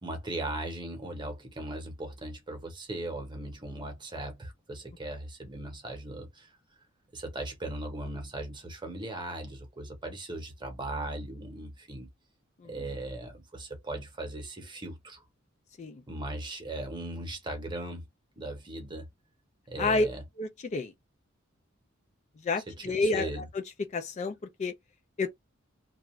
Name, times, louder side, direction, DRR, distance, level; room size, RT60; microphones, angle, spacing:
voice 1, 0.0-6.5 7.1-12.1 12.7-15.2 16.1-18.0 18.4-19.1 19.7-20.2 22.7-23.5, right 1 dB, 25° right, 0.9 m, -38 dB
voice 2, 20.4-20.9 22.4-23.3 23.5-23.6 23.9-24.7 25.2-25.3, left 3 dB, 35° left, 0.4 m, -29 dB
2.4 x 2.3 x 3.0 m
head